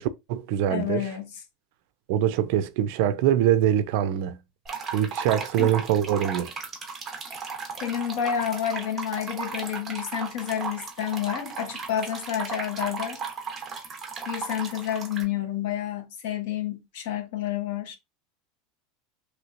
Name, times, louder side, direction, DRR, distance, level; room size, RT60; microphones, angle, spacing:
voice 1, 0.0-1.1 2.1-4.4 4.9-6.5, right 10 dB, 65° right, 0.4 m, -24 dB
voice 2, 0.7-1.3 5.6-5.7 7.8-13.2 14.2-18.0, left 10 dB, 75° left, 0.8 m, -29 dB
sound 1, 4.7-15.2, right 5 dB, 20° right, 0.8 m, -36 dB
3.1 x 2.9 x 2.5 m
supercardioid pair, 155°, 0 cm